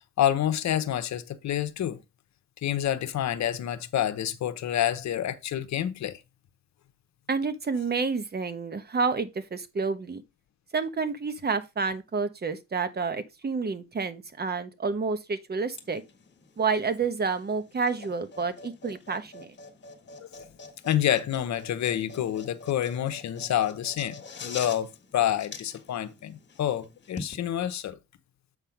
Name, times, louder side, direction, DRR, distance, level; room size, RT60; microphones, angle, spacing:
voice 1, 0.0-2.0 2.6-6.2 20.2-20.4 20.8-28.0, left 11 dB, 65° left, 1.0 m, -28 dB
voice 2, 7.3-10.2 10.7-16.0 16.6-19.5, right 4 dB, 30° right, 1.1 m, -29 dB
sound 1, 15.7-27.3, left 4 dB, 35° left, 1.7 m, -46 dB
7.9 x 3.5 x 5.8 m
cardioid pair, 90°, 30 cm